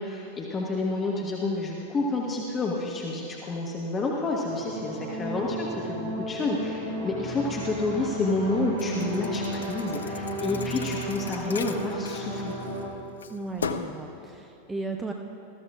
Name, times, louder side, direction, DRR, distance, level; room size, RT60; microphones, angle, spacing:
voice 1, 0.0-12.6, left 3 dB, 20° left, -2 dB, 1.2 m, -29 dB
sound 1, 4.5-12.9, right 1 dB, 50° right, 2.8 m, -34 dB
Thump thud, 8.8-12.8 13.2-14.0, left 5 dB, 70° left, 0.5 m, -37 dB
voice 2, 13.3-15.1, right 3 dB, 10° right, 3 dB, 0.6 m, -35 dB
20.0 x 14.0 x 2.4 m, 2.8 s
figure-of-eight pair, 90°, 0 cm